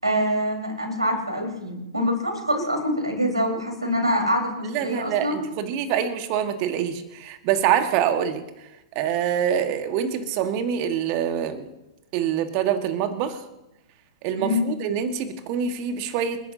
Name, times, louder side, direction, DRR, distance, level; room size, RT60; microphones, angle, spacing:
voice 1, 0.0-5.4 14.4-14.7, equal, 85° right, 1 dB, 4.4 m, -25 dB
voice 2, 4.6-8.4 8.9-11.7 12.1-13.4 14.2-16.5, right 9 dB, 40° right, 8 dB, 1.6 m, -25 dB
28.5 x 11.0 x 2.8 m, 0.94 s
figure-of-eight pair, 105°, 3 cm